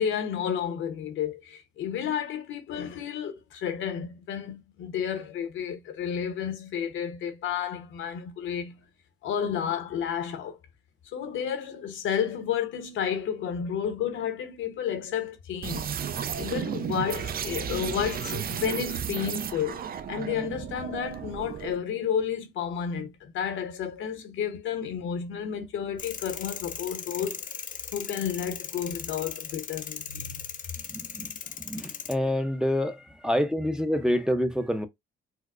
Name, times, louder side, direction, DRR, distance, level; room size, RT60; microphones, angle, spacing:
voice 1, 0.0-8.8 9.2-10.6 11.1-15.9 16.4-19.8 20.1-27.4 27.9-30.5, left 8 dB, 75° left, 0.9 m, -31 dB
sound 1, 15.6-21.8, right 8 dB, 50° right, 0.5 m, -33 dB
sound 2, 26.0-32.1, left 7 dB, 40° left, 0.5 m, -38 dB
voice 2, 30.9-31.3 31.7-33.0 33.2-34.9, equal, 5° right, 0.6 m, -27 dB
4.4 x 2.0 x 2.4 m
cardioid pair, 90°, 20 cm